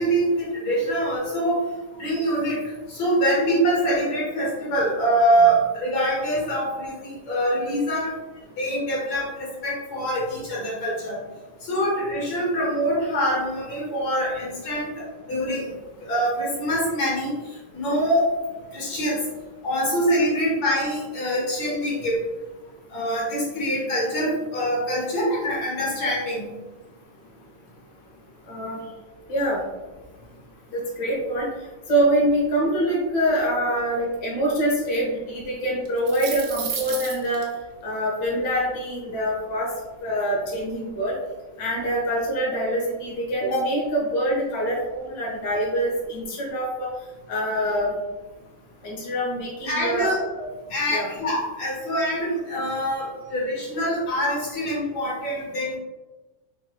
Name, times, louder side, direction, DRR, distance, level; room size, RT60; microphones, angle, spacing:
voice 1, 0.0-1.6 2.0-2.6 2.9-8.1 8.6-11.2 11.6-14.9 15.3-15.7 16.0-17.3 17.7-18.2 18.7-19.2 19.6-22.2 22.9-26.5 49.6-50.2 50.7-55.8, right 1 dB, 45° left, -6 dB, 1.9 m, -24 dB
voice 2, 28.5-28.8 29.3-29.6 30.7-31.5 31.9-37.5 37.8-39.7 40.0-41.1 41.6-46.9 47.3-48.0 48.8-50.1 50.4-50.5 50.9-51.1, equal, 85° left, -4 dB, 0.9 m, -25 dB
sound 1, 35.9-37.4, right 7 dB, 70° right, 1.9 m, -32 dB
5.0 x 4.6 x 2.2 m, 1.2 s
omnidirectional pair, 3.7 m